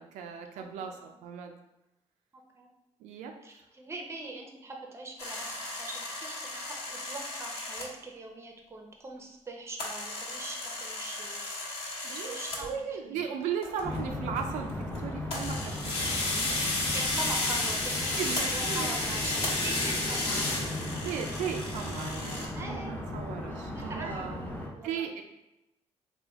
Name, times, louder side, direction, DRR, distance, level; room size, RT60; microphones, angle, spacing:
voice 1, 0.0-1.5 3.0-3.3 12.0-16.7 18.2-18.9 21.0-24.4 24.8-25.2, right 7 dB, 85° right, 4 dB, 0.4 m, -37 dB
voice 2, 0.6-1.0 2.5-2.7 3.4-11.8 12.1-13.2 16.9-21.0 22.5-23.0 23.7-24.2 24.7-25.1, right 2 dB, 20° right, 1 dB, 0.7 m, -42 dB
sound 1, 5.2-7.8 9.8-12.7 13.6-14.0 14.4-15.0 15.3-22.5, left 2 dB, 55° left, 1.2 m, -33 dB
sound 2, 13.8-24.7, left 1 dB, 15° left, 0.7 m, -37 dB
3.3 x 2.3 x 3.4 m, 0.93 s
cardioid pair, 90°, 12 cm